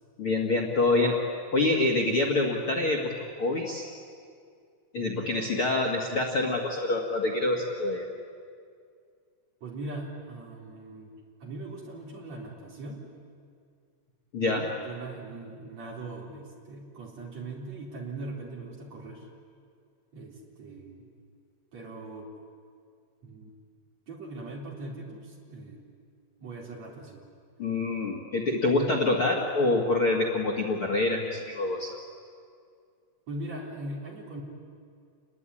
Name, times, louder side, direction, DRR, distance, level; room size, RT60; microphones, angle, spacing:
voice 1, 0.2-1.2 1.5-3.1 3.4-3.9 4.9-8.0 14.3-14.7 27.6-32.0, left 2 dB, 85° left, 0 dB, 1.1 m, -26 dB
voice 2, 9.6-11.1 11.4-13.1 14.5-19.3 20.1-21.1 21.7-22.3 23.2-23.5 24.1-25.9 26.4-27.2 33.3-34.4, right 2 dB, 35° right, -1 dB, 4.4 m, -40 dB
28.5 x 21.0 x 9.9 m, 2.2 s
omnidirectional pair, 5.9 m